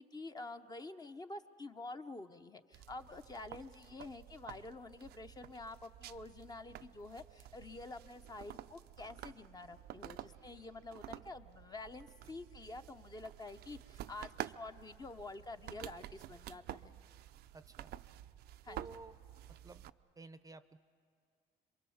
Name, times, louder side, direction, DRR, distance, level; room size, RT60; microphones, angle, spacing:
voice 1, 0.0-17.0 18.6-18.8, left 2 dB, 25° left, 8 dB, 0.8 m, -48 dB
sound 1, 2.7-19.9, right 13 dB, 70° right, 0.5 m, -50 dB
voice 2, 17.5-17.9 18.7-19.2 19.6-19.8 20.2-20.8, right 3 dB, 20° right, 13 dB, 0.7 m, -53 dB
27.0 x 23.0 x 7.2 m, 2.2 s
cardioid pair, 110°, 17 cm